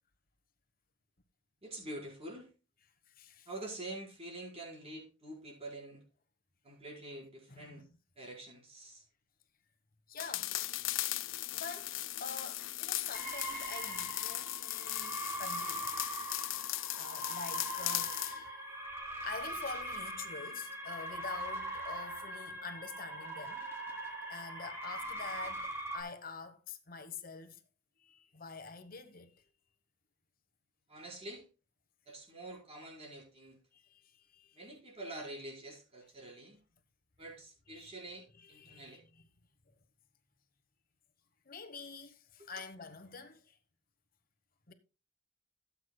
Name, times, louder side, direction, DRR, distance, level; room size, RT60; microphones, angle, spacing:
voice 1, 1.6-2.5 3.5-6.0 6.6-7.8 8.2-9.0 30.9-31.4 32.1-33.6 34.5-36.6 37.2-39.0 42.4-42.5, right 1 dB, 30° right, 4.8 m, -46 dB
voice 2, 3.1-3.5 7.5-7.9 10.1-10.6 11.5-16.0 17.0-18.5 19.2-23.6 24.3-27.6 28.0-29.4 33.7-34.6 37.7-39.3 41.5-43.6 44.7-44.8, left 4 dB, 45° left, 1.2 m, -47 dB
sound 1, 10.2-18.4, left 16 dB, 80° left, 0.5 m, -38 dB
sound 2, 13.1-26.0, right 1 dB, 15° right, 3.4 m, -41 dB
17.0 x 8.3 x 2.3 m
head